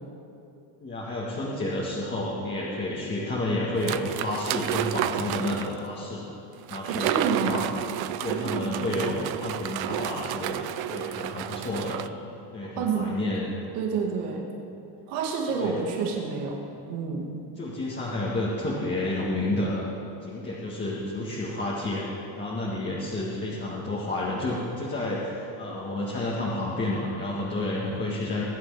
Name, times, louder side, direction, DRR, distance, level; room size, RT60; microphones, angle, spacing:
voice 1, 0.8-6.3 6.7-7.1 7.5-7.7 8.2-12.0 12.5-13.5 15.5-15.7 17.6-19.9 20.2-22.0 22.4-28.4, left 2 dB, 20° left, -6 dB, 1.9 m, -30 dB
sound 1, 3.8-5.8 6.7-12.1, right 13 dB, 50° right, 0.5 m, -31 dB
voice 2, 6.9-7.6 8.3-8.8 12.8-13.1 13.7-14.5 15.1-16.6 16.9-17.3, right 5 dB, 85° right, 0 dB, 2.3 m, -29 dB
21.0 x 8.5 x 4.9 m, 2.8 s
cardioid pair, 130°, 50 cm